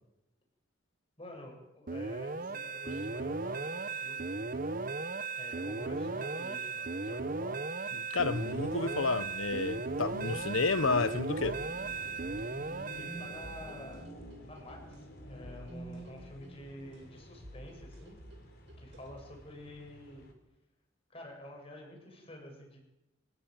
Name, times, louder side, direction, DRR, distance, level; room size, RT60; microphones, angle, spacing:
voice 1, 1.2-4.8 5.4-7.6 7.8-8.0 13.0-14.1 14.4-18.2 18.8-20.2 21.1-22.8, left 1 dB, 30° left, 7.0 m, -49 dB
sound 1, 1.9-14.0, right 3 dB, 45° right, 1.0 m, -37 dB
voice 2, 8.1-11.6, left 3 dB, 80° left, 1.1 m, -30 dB
sound 2, 8.1-20.3, equal, 50° left, 4.5 m, -50 dB
sound 3, 11.4-19.4, equal, 60° right, 5.3 m, -53 dB
25.5 x 15.5 x 9.2 m
head